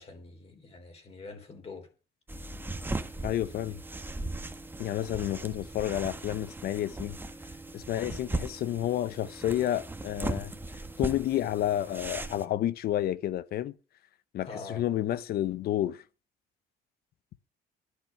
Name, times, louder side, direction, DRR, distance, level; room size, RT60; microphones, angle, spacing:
voice 1, 0.0-1.9 14.5-14.8, left 4 dB, 35° left, 3.7 m, -44 dB
sound 1, 2.3-12.4, right 2 dB, 10° right, 1.5 m, -38 dB
voice 2, 3.2-3.8 4.8-7.2 7.7-10.5 11.0-13.8 14.3-16.0, left 12 dB, 65° left, 0.9 m, -30 dB
11.5 x 10.5 x 5.8 m
cardioid pair, 110°, 17 cm